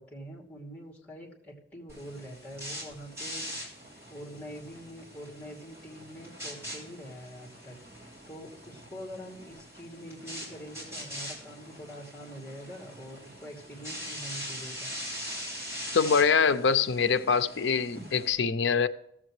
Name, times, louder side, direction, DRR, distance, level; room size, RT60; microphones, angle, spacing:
voice 1, 0.0-3.7 4.1-14.9, equal, 10° left, 2.7 m, -45 dB
sound 1, 1.9-18.3, equal, 15° right, 3.2 m, -42 dB
voice 2, 15.9-18.9, left 6 dB, 90° left, 0.6 m, -24 dB
17.0 x 7.4 x 3.2 m
head